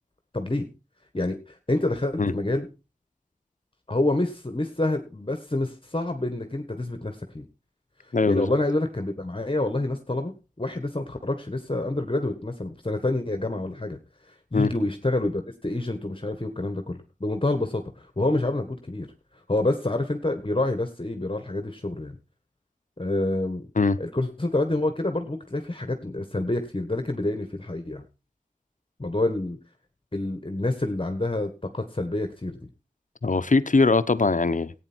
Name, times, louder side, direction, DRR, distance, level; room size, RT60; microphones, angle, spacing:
voice 1, 0.3-0.7 1.1-2.7 3.9-7.5 8.2-10.3 10.6-14.0 14.5-19.1 19.5-22.2 23.0-23.7 24.0-28.0 29.0-29.6 30.1-32.6, left 2 dB, 40° left, 1.6 m, -27 dB
voice 2, 8.1-8.5 14.5-14.7 23.8-24.0 33.2-34.7, left 3 dB, 70° left, 0.8 m, -21 dB
15.5 x 9.1 x 4.5 m
wide cardioid pair, 50°, 14 cm